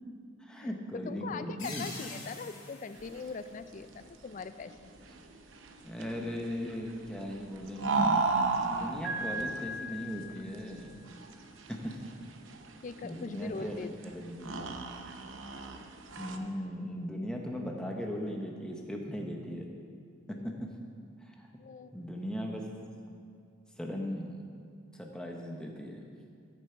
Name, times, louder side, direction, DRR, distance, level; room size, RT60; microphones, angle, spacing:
voice 1, 0.4-1.9 5.8-8.1 8.8-11.0 11.7-12.0 13.0-14.7 16.2-19.6 20.3-20.7 21.2-21.5 21.9-22.6 23.8-24.4 24.9-26.0, equal, 5° left, 0 dB, 0.9 m, -38 dB
voice 2, 1.0-5.0 12.8-14.0 20.3-20.6 21.6-22.0, left 4 dB, 40° left, 12 dB, 0.3 m, -42 dB
sound 1, 1.6-4.2, left 3 dB, 90° left, 3.0 m, -46 dB
sound 2, 2.9-16.4, right 3 dB, 75° right, 0.7 m, -35 dB
Piano, 9.0-11.0, right 1 dB, 60° left, 2.4 m, -39 dB
13.5 x 6.9 x 4.5 m, 2.2 s
head